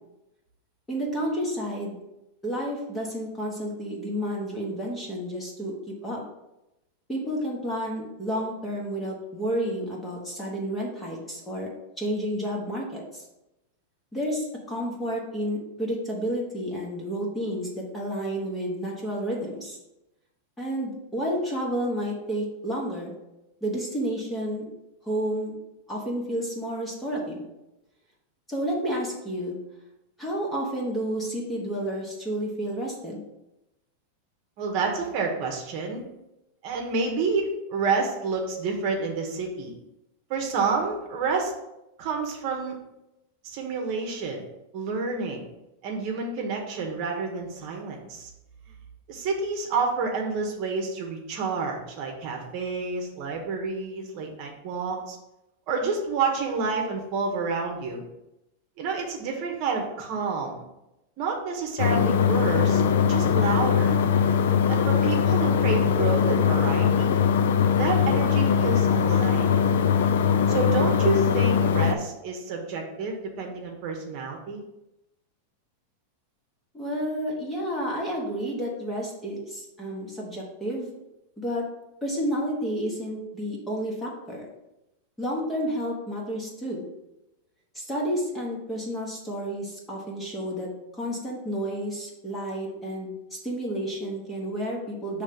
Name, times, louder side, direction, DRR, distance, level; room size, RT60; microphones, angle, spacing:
voice 1, 0.9-2.0 2.4-6.2 7.1-13.2 14.1-19.8 20.6-23.1 23.6-24.6 25.0-25.6 25.9-27.5 28.5-29.6 30.2-33.2 76.7-80.9 81.4-81.7 82.0-84.5 85.2-86.9 87.7-90.7 91.0-95.2, equal, 10° left, -3 dB, 1.2 m, -30 dB
voice 2, 34.6-36.0 36.6-39.7 40.3-41.5 42.0-42.8 43.4-44.4 44.7-45.5 45.8-48.3 49.1-55.2 55.7-58.0 58.8-60.6 61.2-62.8 63.1-63.9 64.7-67.2 67.7-69.5 70.5-74.6, right 4 dB, 40° right, 1 dB, 1.1 m, -29 dB
sound 1, 61.8-71.9, left 7 dB, 70° left, 0.4 m, -21 dB
6.3 x 3.3 x 5.3 m, 0.93 s
supercardioid pair, 165°, 0 cm